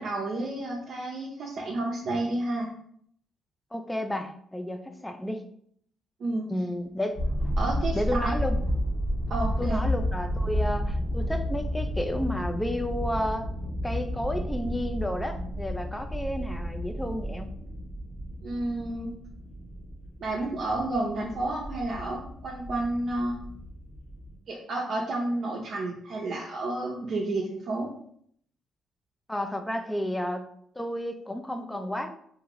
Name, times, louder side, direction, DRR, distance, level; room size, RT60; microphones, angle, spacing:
voice 1, 0.0-2.7 6.2-6.5 7.6-8.3 9.3-9.8 18.4-19.1 20.2-23.4 24.5-27.9, right 2 dB, 60° right, -3 dB, 0.5 m, -30 dB
voice 2, 3.7-5.4 6.5-7.2 7.9-8.6 9.6-13.5 13.8-17.6 29.3-30.5 30.8-32.1, left 1 dB, 10° left, 7 dB, 0.4 m, -31 dB
sound 1, 7.1-24.4, equal, 45° left, 1.3 m, -32 dB
2.8 x 2.5 x 3.0 m, 0.67 s
cardioid pair, 90°, 0 cm